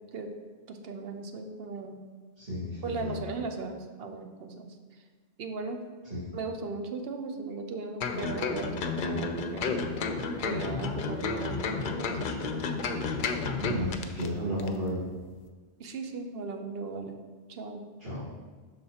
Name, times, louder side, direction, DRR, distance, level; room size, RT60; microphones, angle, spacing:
voice 1, 0.7-2.0 2.8-4.7 5.4-5.8 6.3-10.1 10.4-12.7 15.8-17.2 17.5-17.8, right 4 dB, 70° right, 5 dB, 0.9 m, -37 dB
voice 2, 2.4-3.2 6.1-6.3 13.6-15.0 18.0-18.2, equal, 50° right, -11 dB, 2.0 m, -33 dB
sound 1, 8.0-14.3 14.6-14.7, left 4 dB, 60° left, 0.6 m, -31 dB
12.0 x 4.0 x 2.8 m, 1.5 s
omnidirectional pair, 1.1 m